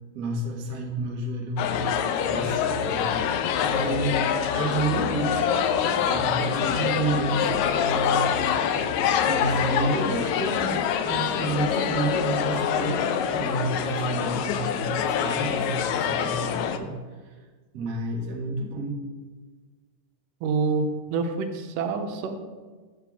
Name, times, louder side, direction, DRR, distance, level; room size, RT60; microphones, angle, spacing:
voice 1, 0.1-1.7 2.2-3.1 3.6-4.2 4.5-5.5 6.1-8.3 8.7-8.9 9.3-16.9 17.7-19.0, right 2 dB, 55° right, -1 dB, 1.1 m, -30 dB
sound 1, 1.6-16.8, left 8 dB, 80° left, 1.6 m, -25 dB
voice 2, 20.4-22.4, right 4 dB, 85° right, 6 dB, 2.3 m, -27 dB
8.7 x 7.7 x 3.5 m, 1.4 s
omnidirectional pair, 3.7 m